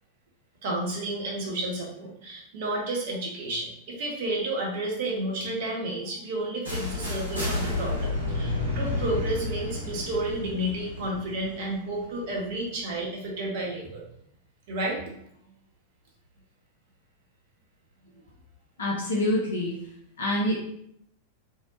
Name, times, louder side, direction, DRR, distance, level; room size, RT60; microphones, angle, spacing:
voice 1, 0.6-14.0 14.7-15.2 18.1-18.2, right 1 dB, 50° right, -1 dB, 0.7 m, -31 dB
sound 1, 6.6-12.5, left 2 dB, 85° right, 0.7 m, -31 dB
voice 2, 18.8-19.8 20.2-20.7, left 1 dB, 70° left, -3 dB, 0.5 m, -26 dB
2.7 x 2.1 x 2.7 m, 0.70 s
figure-of-eight pair, 90°, 0 cm